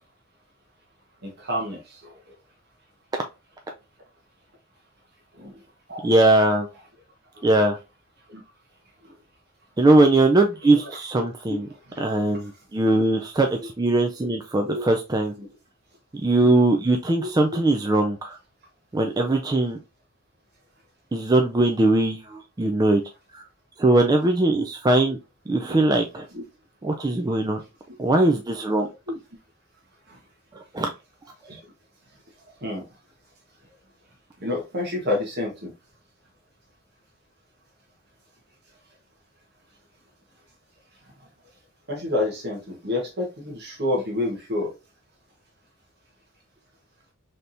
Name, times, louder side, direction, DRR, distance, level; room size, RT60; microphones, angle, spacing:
voice 1, 1.4-1.8 5.4-5.5 5.9-6.1 8.3-8.4 10.8-10.9 11.5-11.6 11.9-12.0 12.3-12.4 14.2-14.3 14.6-14.9 15.4-15.5 17.2-17.3 25.7-25.8 26.3-26.4 29.1-29.2 32.6-32.8 34.4-35.7 41.9-44.7, left 2 dB, 50° right, 1.1 m, -28 dB
voice 2, 6.0-6.7 7.4-7.8 9.8-11.7 12.0-15.3 16.2-18.4 18.9-19.8 21.1-23.0 23.3-23.4 23.8-25.2 25.5-26.2 26.8-27.6 28.0-28.9 30.5-30.9 31.5-31.6, right 2 dB, 20° right, 0.3 m, -20 dB
4.2 x 3.4 x 2.6 m
head